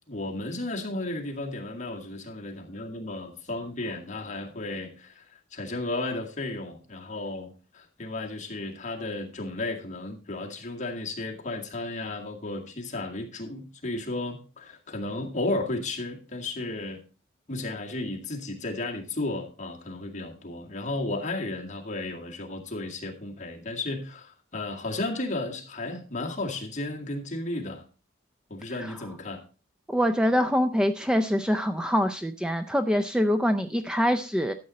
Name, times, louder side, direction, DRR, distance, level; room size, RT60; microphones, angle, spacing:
voice 1, 0.1-5.3 5.5-17.0 17.5-27.8 28.5-29.4, left 2 dB, 40° left, 0 dB, 2.1 m, -34 dB
voice 2, 29.9-34.5, equal, 5° right, 8 dB, 0.4 m, -24 dB
12.5 x 7.6 x 4.1 m, 0.36 s
head